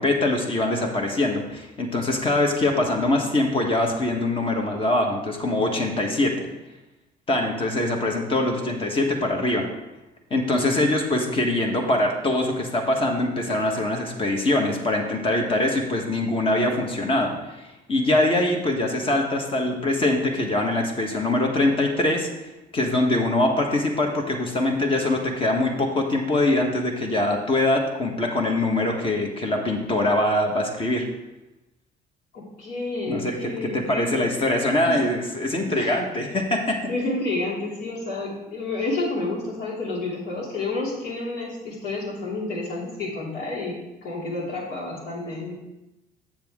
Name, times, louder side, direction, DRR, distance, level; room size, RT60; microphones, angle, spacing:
voice 1, 0.0-6.5 7.3-9.7 10.3-22.3 22.7-31.1 33.1-36.8, left 1 dB, 30° left, 2 dB, 1.4 m, -23 dB
voice 2, 32.3-34.2 34.9-35.0 35.6-36.0 36.9-45.5, left 2 dB, 75° left, -4 dB, 2.9 m, -30 dB
7.4 x 7.3 x 3.6 m, 0.98 s
cardioid pair, 110°, 17 cm